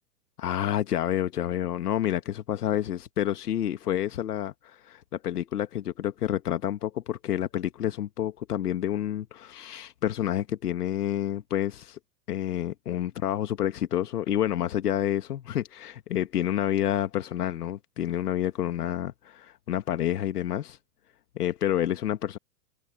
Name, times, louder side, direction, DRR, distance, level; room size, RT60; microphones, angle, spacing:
voice 1, 0.4-12.0 12.3-20.8 21.3-22.4, left 11 dB, 75° left, 1.6 m, -29 dB
hypercardioid pair, 125°, 46 cm